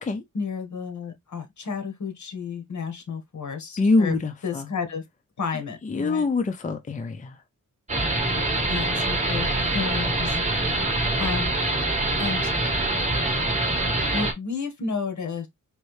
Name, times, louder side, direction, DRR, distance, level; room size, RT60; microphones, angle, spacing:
voice 1, 0.3-4.1 4.4-5.0 5.4-6.3 8.7-10.4 10.6-10.8 11.2-11.5 12.2-12.5 14.1-15.5, left 5 dB, 65° left, 1.4 m, -32 dB
voice 2, 3.8-4.7 5.8-7.4, left 3 dB, 25° left, 0.5 m, -24 dB
sound 1, 7.9-14.3, right 2 dB, 20° right, 1.5 m, -24 dB
4.4 x 2.7 x 3.1 m
wide cardioid pair, 115°, 31 cm